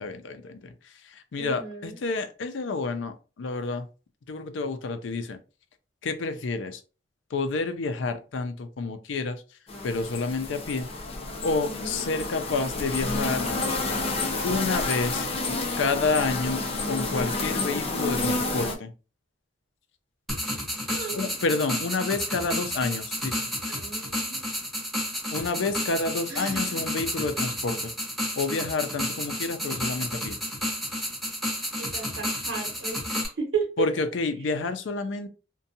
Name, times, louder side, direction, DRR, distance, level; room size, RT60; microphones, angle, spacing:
voice 1, 0.0-3.9 4.3-5.4 6.0-6.8 7.3-9.4 9.8-10.9 11.4-13.5 14.4-15.3 15.8-18.9 21.1-23.5 25.3-27.9 28.4-30.4 33.8-35.3, left 3 dB, 90° left, 0.4 m, -29 dB
voice 2, 1.4-2.0 20.9-21.2 23.7-24.5 26.3-26.9 31.8-33.7, right 5 dB, 80° right, 0.9 m, -34 dB
sound 1, 9.7-18.7, left 2 dB, 30° left, 0.5 m, -29 dB
sound 2, 20.3-33.3, equal, ahead, 0.8 m, -31 dB
2.6 x 2.2 x 2.6 m
head